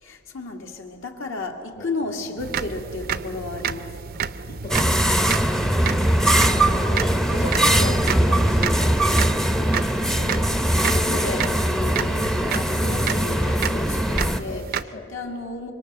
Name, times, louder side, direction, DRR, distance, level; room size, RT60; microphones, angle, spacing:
voice 1, 0.0-3.9 6.1-8.9 10.1-14.7 15.1-15.7, left 2 dB, 70° left, 2.2 m, -34 dB
sound 1, 1.9-12.2, right 1 dB, 85° left, 7.6 m, -49 dB
sound 2, 2.4-14.8, right 7 dB, 45° right, 0.5 m, -31 dB
voice 2, 4.5-5.3 6.0-6.2 9.0-9.2 13.7-13.9 14.5-15.1, left 2 dB, 45° left, 1.5 m, -40 dB
sound 3, 4.7-14.4, right 1 dB, ahead, 0.6 m, -21 dB
26.0 x 23.5 x 6.7 m
head